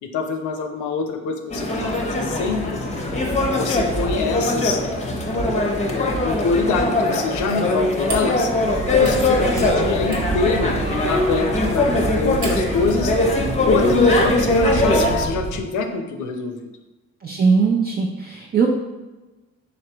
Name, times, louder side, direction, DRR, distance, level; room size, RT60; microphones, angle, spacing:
voice 1, 0.0-2.8 3.5-4.8 5.9-8.5 8.9-10.8 11.1-13.1 13.7-16.7, left 4 dB, 75° left, 5 dB, 0.6 m, -25 dB
sound 1, 1.5-15.3, left 1 dB, 20° left, 0.7 m, -21 dB
sound 2, 7.4-12.9, right 3 dB, 70° right, 1.3 m, -38 dB
sound 3, 8.6-15.6, right 3 dB, 55° right, 1.0 m, -29 dB
voice 2, 17.2-18.7, right 5 dB, 30° right, -1 dB, 0.5 m, -19 dB
4.0 x 3.3 x 2.9 m, 1.1 s
cardioid pair, 90°, 30 cm